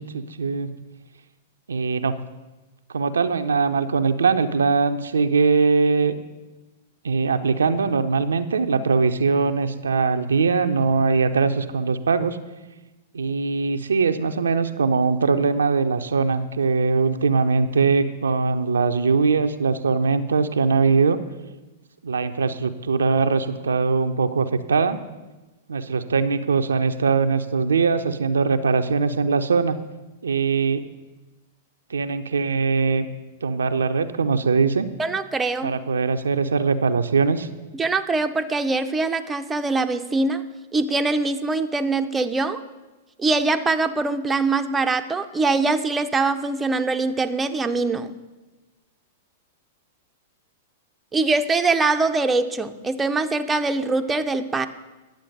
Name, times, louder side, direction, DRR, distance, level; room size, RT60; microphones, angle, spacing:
voice 1, 0.1-0.7 1.7-2.2 2.9-6.2 7.0-12.4 13.1-21.2 22.0-25.0 25.7-29.8 30.2-30.8 31.9-33.1 33.4-34.9 35.6-37.5, right 4 dB, 80° right, 8 dB, 0.5 m, -21 dB
voice 2, 35.0-35.7 37.7-40.4 40.7-42.6 43.2-48.1 51.1-54.7, right 3 dB, 15° right, 6 dB, 0.6 m, -23 dB
10.5 x 7.5 x 5.3 m, 1.1 s
figure-of-eight pair, 105°, 0 cm